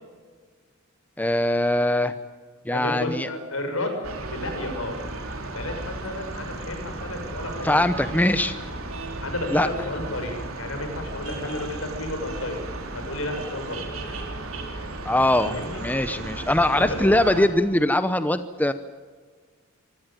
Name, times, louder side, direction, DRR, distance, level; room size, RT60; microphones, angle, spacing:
voice 1, 1.2-2.1 2.7-3.3 7.6-8.5 9.5-9.7 15.0-15.5 15.8-18.7, left 1 dB, 10° left, 11 dB, 0.8 m, -21 dB
voice 2, 2.7-4.0 4.2-5.0 5.5-8.1 9.2-12.6 12.9-13.8 15.4-15.8 16.7-17.0, left 1 dB, 75° left, 5 dB, 6.6 m, -32 dB
sound 1, 4.0-17.5, right 2 dB, 75° right, 3.9 m, -35 dB
24.5 x 18.0 x 9.2 m, 1.5 s
head